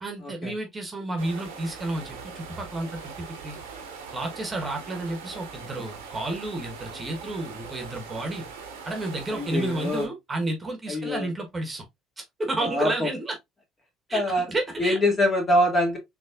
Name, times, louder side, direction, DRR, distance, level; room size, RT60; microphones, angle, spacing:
voice 1, 0.0-3.6 4.1-8.5 8.8-11.8 12.2-13.4 14.1-14.2 14.5-15.0, right 2 dB, 25° right, 1.2 m, -31 dB
sound 1, 1.2-10.1, right 5 dB, 80° right, 0.9 m, -41 dB
voice 2, 9.4-10.1 10.9-11.3 12.6-12.9 14.1-14.5 14.8-16.0, left 1 dB, 30° left, 2.1 m, -23 dB
4.0 x 3.0 x 2.4 m
hypercardioid pair, 60°, 0 cm